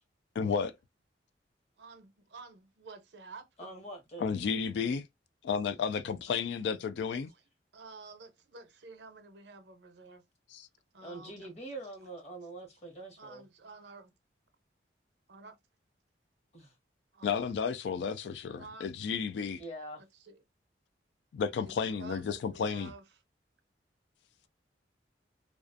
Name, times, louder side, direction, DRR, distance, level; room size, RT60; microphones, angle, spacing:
voice 1, 0.4-0.7 4.2-5.1 5.4-7.3 10.5-10.7 17.2-19.6 21.3-22.9, left 6 dB, 70° left, 0.3 m, -32 dB
voice 2, 1.8-3.7 7.2-7.4 7.7-10.2 10.9-11.4 13.2-14.1 15.3-15.6 17.1-17.3 18.5-18.9 20.0-20.4 21.5-23.2, right 3 dB, 70° right, 0.6 m, -51 dB
voice 3, 3.6-4.3 11.0-13.4 16.5-16.8 19.6-20.0, right 2 dB, 35° left, 1.0 m, -44 dB
2.4 x 2.3 x 2.4 m
head